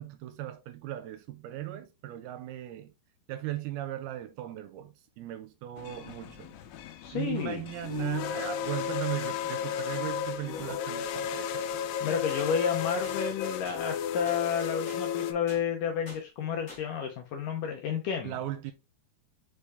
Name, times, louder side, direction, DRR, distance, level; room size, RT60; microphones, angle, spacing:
voice 1, 0.0-2.9 3.3-6.5 7.1-11.9 18.2-18.7, right 14 dB, 80° right, 2.4 m, -37 dB
sound 1, 5.8-15.3, left 8 dB, 90° left, 2.9 m, -34 dB
voice 2, 7.0-7.6 12.0-18.3, left 7 dB, 75° left, 2.1 m, -31 dB
sound 2, 12.3-12.4 13.0-13.2 13.7-13.8 14.3-14.4 14.9-15.0 15.5-15.6 16.1-16.2 16.7-16.8, left 2 dB, 30° left, 1.4 m, -46 dB
5.5 x 5.1 x 3.5 m
omnidirectional pair, 4.8 m